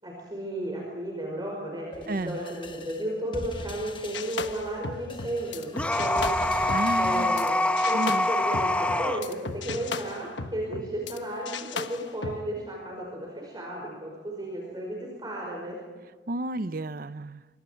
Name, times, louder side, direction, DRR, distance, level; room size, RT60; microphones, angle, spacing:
voice 1, 0.0-6.3 7.0-7.6 7.8-15.8, right 1 dB, 25° right, -2 dB, 5.4 m, -34 dB
sound 1, 1.9-7.6, left 1 dB, 25° left, 1.3 m, -42 dB
voice 2, 2.1-2.4 6.7-7.5 7.9-8.3 16.3-17.4, right 2 dB, 50° right, 14 dB, 0.7 m, -31 dB
sound 2, 4.1-7.5 7.8-11.2 11.5-12.4, left 4 dB, 90° left, 1.2 m, -37 dB
sound 3, 5.7-9.2, left 1 dB, 5° left, 1.1 m, -25 dB
26.5 x 24.5 x 4.6 m, 1.4 s
head